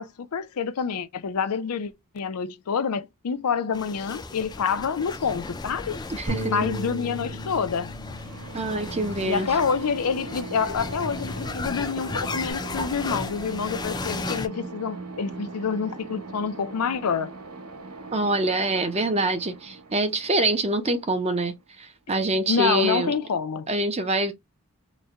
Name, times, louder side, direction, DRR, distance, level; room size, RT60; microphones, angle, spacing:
voice 1, 0.0-6.0 6.5-7.9 9.2-17.3 22.5-23.7, left 6 dB, 85° left, 0.5 m, -27 dB
sound 1, 3.7-14.5, left 3 dB, 20° left, 0.3 m, -35 dB
voice 2, 6.1-6.5 8.5-9.5 18.1-23.1 23.7-24.3, right 2 dB, 30° right, 0.6 m, -25 dB
Bass guitar, 6.3-12.5, equal, 55° right, 1.9 m, -38 dB
sound 2, 8.2-21.8, right 3 dB, 85° right, 1.1 m, -40 dB
4.1 x 2.2 x 3.5 m
head